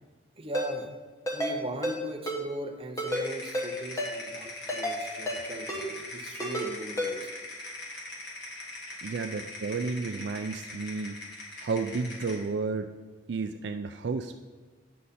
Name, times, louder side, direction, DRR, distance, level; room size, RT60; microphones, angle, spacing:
voice 1, 0.4-1.0 1.3-7.3, right 1 dB, 30° right, 3 dB, 0.8 m, -39 dB
Ringtone, 0.5-0.7 1.3-1.5 1.8-2.0 2.3-2.4 3.0-3.2 3.5-3.7 4.0-4.1 4.7-5.0 5.3-5.4 5.7-5.8 6.4-6.7 7.0-7.1, equal, 15° left, 1.3 m, -30 dB
sound 1, 3.1-12.5, left 2 dB, 55° left, 2.3 m, -41 dB
voice 2, 5.5-6.0 9.0-11.2 11.6-12.9 13.3-14.3, right 4 dB, 60° right, 7 dB, 0.4 m, -32 dB
9.5 x 6.6 x 4.2 m, 1.4 s
head